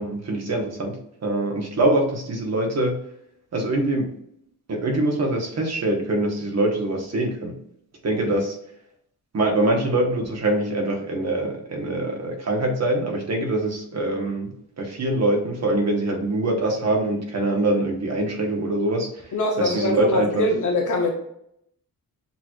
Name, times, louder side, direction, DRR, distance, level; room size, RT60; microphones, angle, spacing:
voice 1, 0.0-3.0 3.5-4.1 4.7-7.6 8.0-8.6 9.3-19.1 19.6-20.5, right 1 dB, 45° right, 1 dB, 1.2 m, -24 dB
voice 2, 19.3-21.1, left 2 dB, 55° left, 0 dB, 0.8 m, -23 dB
6.9 x 3.1 x 2.4 m, 0.73 s
wide cardioid pair, 125°, 36 cm